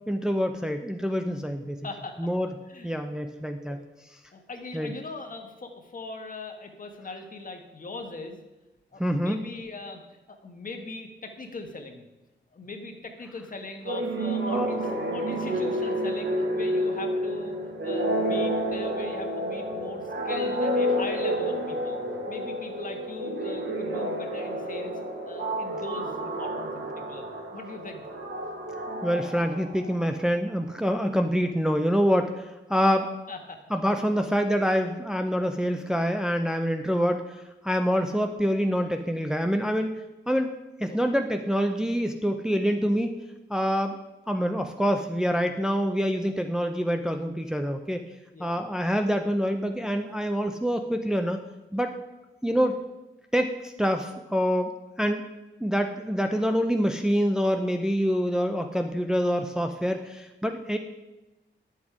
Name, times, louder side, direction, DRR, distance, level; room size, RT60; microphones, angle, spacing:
voice 1, 0.1-1.8 2.2-2.5 2.8-3.8 4.7-4.9 9.0-9.4 14.5-14.7 29.0-33.1 33.7-40.0 40.3-40.5 40.8-43.1 43.5-44.0 44.3-48.0 48.4-51.4 51.7-52.0 52.4-52.7 53.3-54.7 55.0-55.3 55.6-60.8, equal, 5° right, 5 dB, 0.6 m, -26 dB
voice 2, 1.8-2.2 2.7-2.9 3.7-3.8 4.3-8.4 8.9-10.0 10.3-12.1 12.5-17.5 17.8-22.0 22.3-24.9 25.2-27.3 27.5-28.0 32.9-33.6 40.9-41.0 48.3-48.7, left 3 dB, 45° left, 4 dB, 1.5 m, -40 dB
sound 1, 13.8-30.2, equal, 80° right, 1.7 m, -30 dB
11.0 x 7.4 x 4.9 m, 1.1 s
wide cardioid pair, 110°, 19 cm